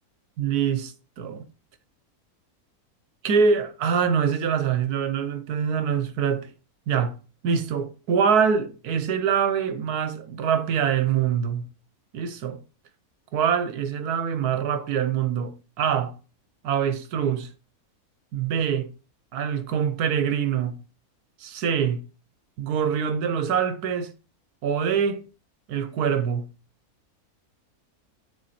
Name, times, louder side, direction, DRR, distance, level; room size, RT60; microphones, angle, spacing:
voice 1, 0.4-1.4 3.2-6.5 6.9-7.2 7.4-11.7 12.1-12.6 13.3-16.1 16.6-17.5 18.3-18.9 19.3-20.8 21.4-22.0 22.6-24.1 24.6-25.2 25.7-26.5, right 7 dB, 85° right, 1.4 m, -24 dB
9.4 x 4.3 x 4.2 m
omnidirectional pair, 1.6 m